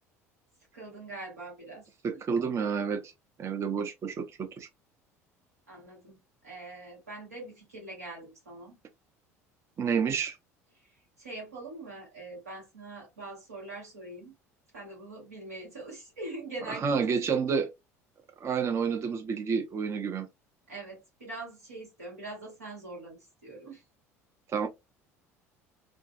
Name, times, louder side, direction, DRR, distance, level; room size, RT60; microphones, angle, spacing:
voice 1, 0.7-1.8 5.7-6.2 6.4-8.8 11.2-14.3 14.7-17.2 20.7-23.8, right 2 dB, 90° right, 1.4 m, -43 dB
voice 2, 2.0-3.1 3.4-4.7 9.8-10.4 16.7-17.7 18.4-20.3 24.5-24.7, right 6 dB, 35° right, 0.5 m, -29 dB
2.5 x 2.3 x 2.3 m
hypercardioid pair, 65°, 8 cm